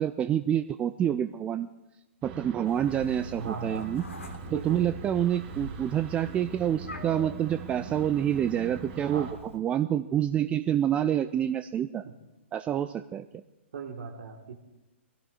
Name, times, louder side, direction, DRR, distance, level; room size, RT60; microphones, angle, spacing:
voice 1, 0.0-1.7 2.2-4.0 4.5-9.3 9.5-12.0 12.5-13.3, right 10 dB, 15° right, 10 dB, 0.4 m, -27 dB
sound 1, 2.2-9.3, right 4 dB, 35° right, 3.5 m, -42 dB
Meow, 2.7-9.6, equal, 85° left, 1.6 m, -45 dB
voice 2, 3.4-3.9 4.5-4.9 9.1-9.3 13.7-14.5, right 5 dB, 60° right, -1 dB, 1.5 m, -38 dB
23.5 x 16.5 x 2.4 m, 1.0 s
figure-of-eight pair, 120°, 7 cm